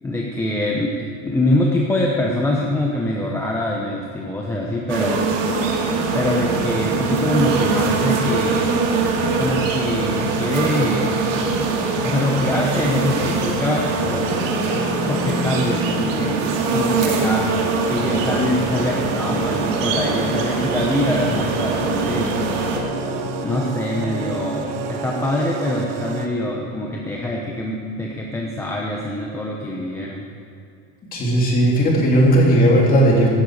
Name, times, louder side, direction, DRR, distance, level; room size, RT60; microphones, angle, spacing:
voice 1, 0.0-5.3 6.1-8.7 9.3-11.2 12.0-14.3 15.1-17.5 17.9-22.4 23.4-30.3, left 1 dB, 5° left, -2 dB, 0.8 m, -24 dB
sound 1, 4.9-22.8, right 4 dB, 85° right, 2.4 m, -22 dB
sound 2, 9.2-11.7 12.0-15.7 16.0-19.7 20.0-23.7 24.0-25.0, left 9 dB, 75° left, 0.9 m, -34 dB
sound 3, 17.1-26.3, right 6 dB, 50° right, 1.3 m, -30 dB
voice 2, 31.1-33.3, right 1 dB, 25° left, -3 dB, 3.1 m, -15 dB
16.0 x 12.5 x 4.8 m, 2.6 s
cardioid pair, 165°, 37 cm